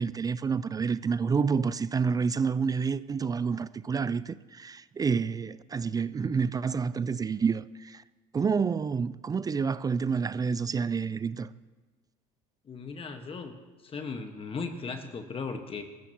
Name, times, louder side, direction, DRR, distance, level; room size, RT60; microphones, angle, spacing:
voice 1, 0.0-8.0 8.3-11.5, right 5 dB, 20° right, 0.4 m, -28 dB
voice 2, 12.6-13.5 13.8-15.8, left 4 dB, 30° left, 1.5 m, -37 dB
21.5 x 13.5 x 3.0 m
hypercardioid pair, 90°, 18 cm